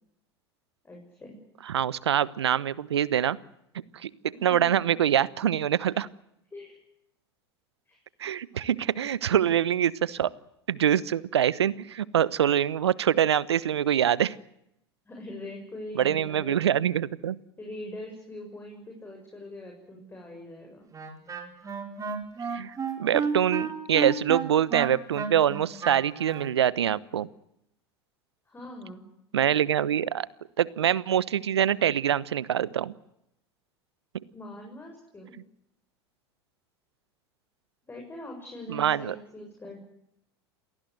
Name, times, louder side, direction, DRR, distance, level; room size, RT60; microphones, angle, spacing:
voice 1, 0.8-1.4 4.3-4.9 6.5-6.8 7.9-8.0 9.5-9.6 15.1-16.6 17.6-20.9 28.5-29.0 34.3-35.3 37.9-39.8, left 1 dB, 15° left, 1 dB, 7.1 m, -42 dB
voice 2, 1.7-3.4 3.9-4.1 4.4-6.1 8.2-10.3 10.7-14.3 15.9-17.4 22.5-27.3 29.3-30.3 30.6-32.9 38.7-39.1, right 10 dB, 85° right, 20 dB, 1.0 m, -25 dB
Wind instrument woodwind instrument, 20.9-26.5, right 5 dB, 25° right, 4.9 m, -31 dB
27.5 x 18.5 x 7.9 m, 0.80 s
hypercardioid pair, 85°, 14 cm